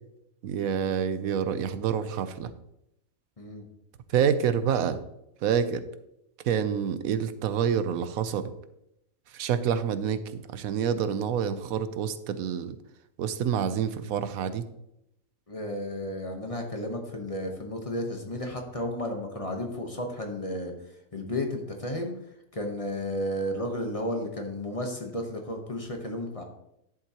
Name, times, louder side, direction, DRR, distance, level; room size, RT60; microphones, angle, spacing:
voice 1, 0.4-2.5 4.1-5.0 5.4-5.8 6.4-8.5 9.3-12.7 13.2-14.6, right 8 dB, 85° right, 12 dB, 1.1 m, -27 dB
voice 2, 15.5-20.7 21.1-22.2 22.5-26.4, left 1 dB, 25° left, 2 dB, 1.0 m, -33 dB
11.0 x 7.5 x 2.9 m, 0.81 s
omnidirectional pair, 1.4 m